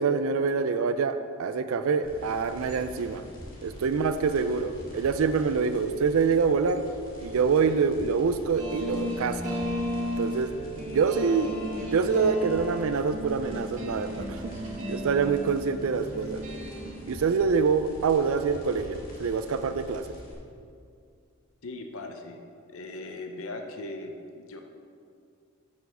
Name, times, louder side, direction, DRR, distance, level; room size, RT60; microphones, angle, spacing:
voice 1, 0.0-3.3 3.6-6.9 7.2-9.4 10.2-10.5 10.8-14.5 14.9-16.4 17.1-20.1, right 5 dB, 70° right, 9 dB, 0.4 m, -26 dB
Vinyl Surface Noise, 2.0-20.3, equal, 40° left, 2.1 m, -45 dB
sound 1, 8.6-16.9, equal, 35° right, 1.4 m, -34 dB
voice 2, 21.6-22.4 22.7-24.6, left 2 dB, 65° left, 4 dB, 0.6 m, -39 dB
7.0 x 6.4 x 5.6 m, 2.3 s
head